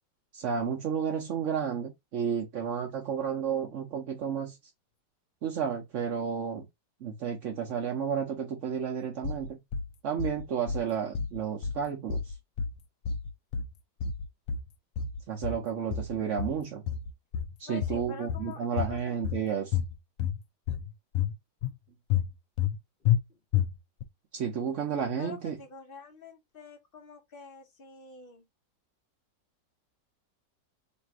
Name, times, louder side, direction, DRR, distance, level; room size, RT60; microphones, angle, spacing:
voice 1, 0.3-4.6 5.4-6.7 7.0-9.6 10.0-12.3 15.3-16.8 17.6-19.8 24.3-25.6, right 7 dB, 55° right, 0.9 m, -32 dB
sound 1, 9.2-9.9 10.2-10.8 11.1-11.8 12.1-12.8 13.0-13.7 14.0-14.7 15.0-15.6 15.9-16.6 16.9-17.5 17.8-18.5 18.8-19.4 19.7-20.4 20.7-21.3 21.6-21.7 22.1-22.7 23.0-23.2 23.5-24.0, left 8 dB, 75° left, 0.7 m, -30 dB
voice 2, 17.7-19.0 23.3-23.4 25.2-28.5, left 4 dB, 40° left, 0.8 m, -46 dB
3.3 x 2.6 x 4.4 m
omnidirectional pair, 1.9 m